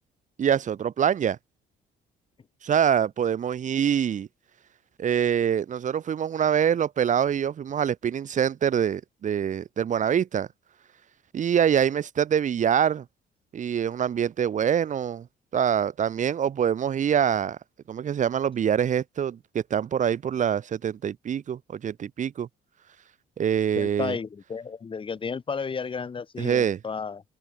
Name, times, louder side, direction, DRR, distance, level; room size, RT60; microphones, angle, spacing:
voice 1, 0.4-1.4 2.6-4.3 5.0-10.5 11.3-13.1 13.5-15.3 15.5-17.6 17.9-22.5 23.4-24.2 26.4-26.8, right 8 dB, 45° right, 5.5 m, -25 dB
voice 2, 23.7-27.2, left 5 dB, 30° left, 6.4 m, -32 dB
cardioid pair, 110°, 17 cm